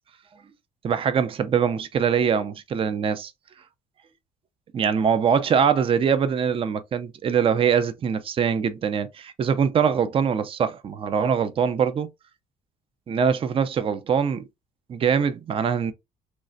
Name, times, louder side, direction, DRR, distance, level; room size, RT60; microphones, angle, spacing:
voice 1, 0.8-3.3 4.7-12.1 13.1-14.4 14.9-15.9, right 7 dB, 35° right, 0.4 m, -23 dB
3.1 x 2.4 x 2.5 m
cardioid pair, 110°, 17 cm